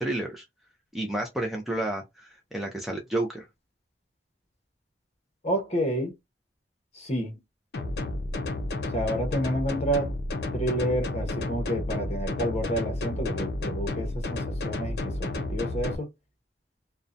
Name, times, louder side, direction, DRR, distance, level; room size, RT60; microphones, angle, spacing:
voice 1, 0.0-0.5 0.9-3.5, right 1 dB, ahead, 0.4 m, -31 dB
voice 2, 5.4-6.1 6.9-7.4 8.9-10.1 10.5-16.1, equal, 35° left, 0.8 m, -29 dB
sound 1, 7.7-15.9, left 2 dB, 60° left, 0.5 m, -31 dB
2.6 x 2.1 x 2.5 m
head